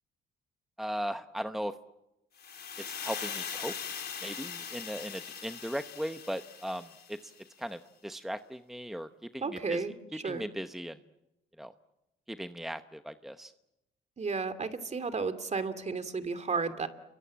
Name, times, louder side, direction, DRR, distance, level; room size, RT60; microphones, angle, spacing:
voice 1, 0.8-1.7 2.9-3.7 4.2-7.3 7.6-9.8 10.2-11.0 11.6-11.7 12.3-13.5, equal, ahead, 9 dB, 1.0 m, -38 dB
sound 1, 2.4-7.4, left 7 dB, 55° left, 3.8 m, -41 dB
voice 2, 9.4-10.5 14.2-16.9, right 4 dB, 35° right, 11 dB, 2.5 m, -33 dB
29.5 x 23.5 x 7.5 m, 0.94 s
cardioid pair, 90°, 20 cm